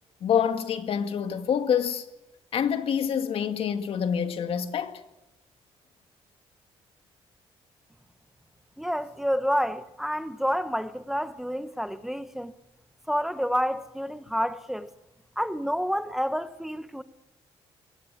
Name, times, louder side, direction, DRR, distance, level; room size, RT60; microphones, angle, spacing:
voice 1, 0.2-2.0 2.5-5.0, left 8 dB, 60° left, 2.0 m, -26 dB
voice 2, 8.8-12.5 13.1-14.9 15.4-17.0, equal, 5° right, 0.9 m, -29 dB
23.5 x 17.5 x 9.8 m
cardioid pair, 95°, 11 cm